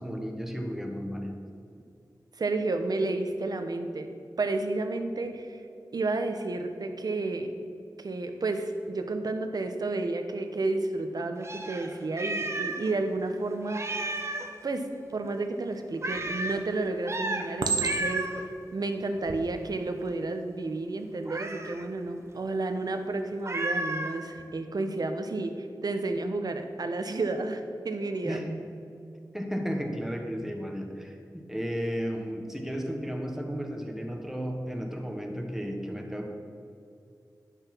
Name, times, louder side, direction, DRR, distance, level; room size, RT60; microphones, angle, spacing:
voice 1, 0.0-1.3 28.2-28.5 29.3-36.3, equal, 5° right, 2 dB, 1.3 m, -34 dB
voice 2, 2.4-4.1 4.4-5.6 5.9-7.5 8.0-14.0 14.6-14.9 15.1-18.3 18.7-28.4, right 2 dB, 65° right, 7 dB, 0.9 m, -31 dB
Meow, 11.4-12.9 13.2-13.3 13.7-14.5 16.0-16.6 17.0-17.5 17.8-18.4 21.3-21.8 23.4-24.2, right 2 dB, 40° right, 1.0 m, -32 dB
Chink clink, 16.1-16.6 17.6-18.4 19.1-19.4, right 4 dB, 85° right, 0.9 m, -30 dB
10.5 x 6.8 x 6.0 m, 2.5 s
wide cardioid pair, 80°, 7 cm